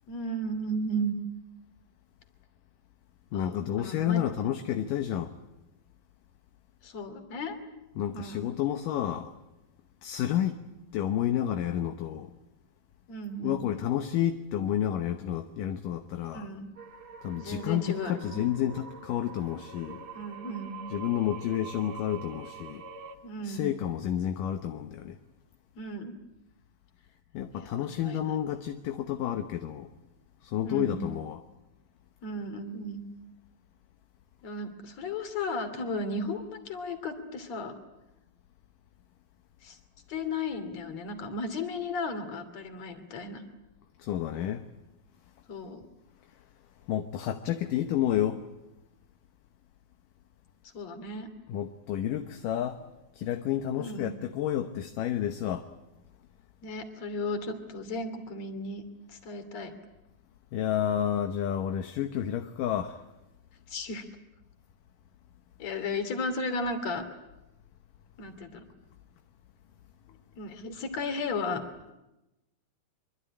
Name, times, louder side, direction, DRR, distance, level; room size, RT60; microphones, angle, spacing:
voice 1, 0.1-1.2 3.3-4.2 6.8-7.6 8.1-8.5 13.1-13.6 16.3-16.7 17.4-18.5 20.1-20.8 23.2-23.7 25.8-26.1 27.6-28.3 30.6-31.1 32.2-33.1 34.4-37.8 39.6-39.8 40.1-43.4 45.5-45.8 50.7-51.3 53.8-54.1 56.6-58.8 59.1-59.7 63.7-64.0 65.6-67.1 68.2-68.7 70.1-71.6, left 1 dB, 50° left, 9 dB, 3.8 m, -35 dB
voice 2, 3.3-5.3 8.0-9.3 10.0-10.6 10.9-12.3 13.4-16.5 17.2-20.1 20.9-22.8 23.4-25.2 27.3-29.9 30.4-31.4 44.0-44.7 46.9-48.5 51.5-52.8 53.1-55.7 60.5-63.0, left 10 dB, 75° left, 7 dB, 2.6 m, -30 dB
sound 1, 16.8-23.2, right 6 dB, 45° right, 2.4 m, -45 dB
25.0 x 24.5 x 9.9 m, 0.96 s
omnidirectional pair, 4.1 m